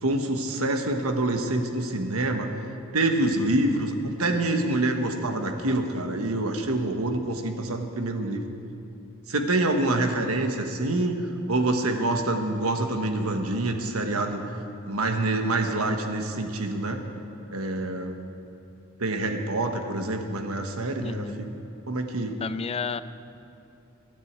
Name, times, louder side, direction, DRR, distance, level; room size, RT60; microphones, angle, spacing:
voice 1, 0.0-2.5 2.9-8.5 9.3-11.1 11.5-14.4 14.8-17.0 17.5-18.2 19.0-21.6 21.9-22.4, right 2 dB, 80° right, 4 dB, 1.3 m, -26 dB
voice 2, 21.0-21.5 22.4-23.0, left 5 dB, 30° left, 13 dB, 0.4 m, -31 dB
14.0 x 9.4 x 8.1 m, 2.9 s
head